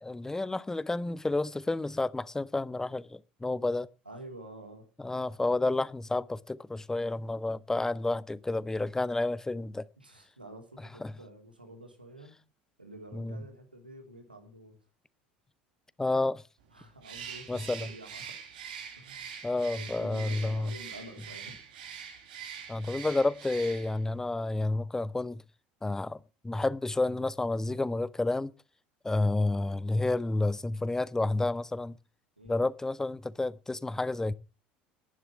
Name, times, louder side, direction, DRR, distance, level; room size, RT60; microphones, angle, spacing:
voice 1, 0.0-3.9 5.0-9.8 11.0-11.1 13.1-13.4 16.0-16.4 17.5-17.9 19.4-20.7 22.7-25.4 25.8-28.5 29.0-32.0 32.5-34.3, left 2 dB, 10° left, 0.7 m, -30 dB
voice 2, 4.0-4.9 10.0-12.3 12.8-14.8 16.7-18.4 19.0-19.3 19.7-21.6 32.4-32.6, right 1 dB, 90° right, 2.9 m, -49 dB
Bird, 17.0-24.1, right 7 dB, 70° right, 2.8 m, -44 dB
11.0 x 10.0 x 7.2 m
figure-of-eight pair, 70°, 5 cm